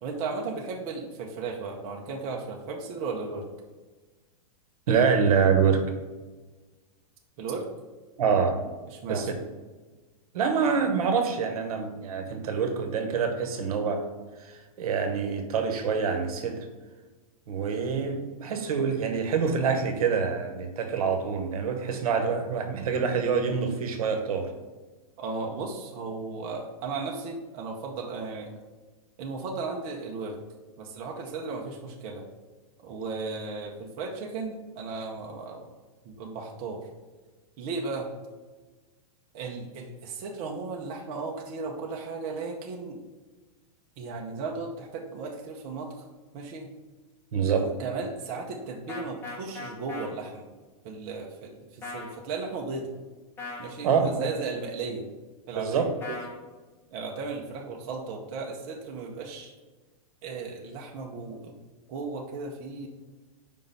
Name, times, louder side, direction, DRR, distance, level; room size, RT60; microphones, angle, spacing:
voice 1, 0.0-3.5 7.4-7.7 8.9-9.3 25.2-28.5 29.2-30.4 30.8-32.2 32.8-35.7 36.0-36.9 37.6-38.1 39.3-43.0 44.0-46.0 46.3-46.7 47.6-50.4 50.8-52.9 53.6-55.1 55.5-55.9 56.9-59.5 60.2-61.6 61.9-62.9, right 4 dB, 35° right, 0 dB, 0.8 m, -35 dB
voice 2, 4.9-5.8 8.2-8.6 9.1-9.3 10.3-14.0 14.4-16.6 17.5-24.5 47.3-47.7 53.8-54.3 55.5-55.8, right 6 dB, 75° right, 5 dB, 1.1 m, -26 dB
sound 1, 48.9-50.1 51.8-52.1 53.4-53.7 56.0-56.3, left 3 dB, 10° left, 0.9 m, -38 dB
5.1 x 3.8 x 5.4 m, 1.3 s
supercardioid pair, 155°, 19 cm